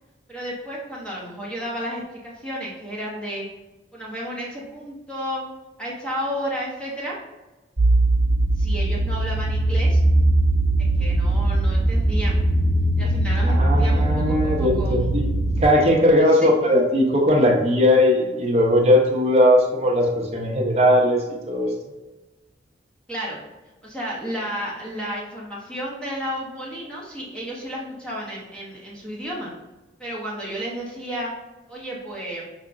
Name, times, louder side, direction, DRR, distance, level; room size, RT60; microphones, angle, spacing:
voice 1, 0.3-3.5 3.9-5.4 5.8-7.2 8.5-10.0 11.0-12.4 13.0-15.1 16.3-16.5 23.1-23.4 23.8-29.5 30.0-31.3 31.7-32.5, equal, 5° left, -5 dB, 0.8 m, -32 dB
sound 1, 7.8-15.6, right 1 dB, 50° right, 1.0 m, -20 dB
voice 2, 13.5-15.3 15.6-21.7, left 1 dB, 35° right, -1 dB, 0.7 m, -19 dB
5.6 x 2.9 x 2.5 m, 1.1 s
head